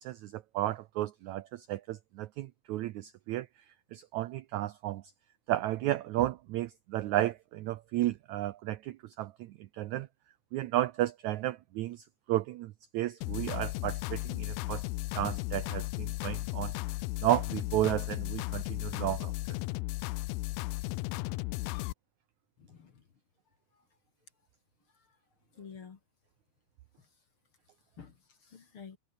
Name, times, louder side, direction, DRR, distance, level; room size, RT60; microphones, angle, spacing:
voice 1, 0.0-3.5 3.9-5.0 5.5-10.1 10.5-14.8 15.1-16.7 17.2-19.3, right 14 dB, 85° right, 1.6 m, -33 dB
sound 1, 13.2-21.9, left 21 dB, 80° left, 2.2 m, -35 dB
voice 2, 22.6-23.1 23.7-23.8 24.9-25.2 25.5-26.0 27.0-27.1 28.0-29.0, left 6 dB, 40° left, 2.4 m, -51 dB
omnidirectional pair, 4.3 m